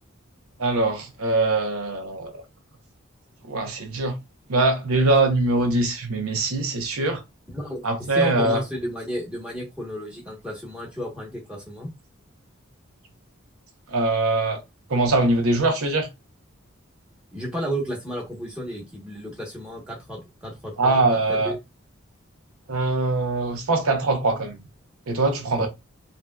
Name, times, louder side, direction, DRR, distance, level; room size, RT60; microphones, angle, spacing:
voice 1, 0.6-2.4 3.4-4.2 4.5-7.2 7.8-8.6 13.9-14.6 14.9-16.1 20.8-21.5 22.7-24.6 25.1-25.7, right 2 dB, 90° right, 0.8 m, -22 dB
voice 2, 8.1-11.9 17.3-21.0 21.3-21.6 25.6-25.7, equal, 5° right, 1.0 m, -32 dB
3.3 x 2.7 x 2.2 m
head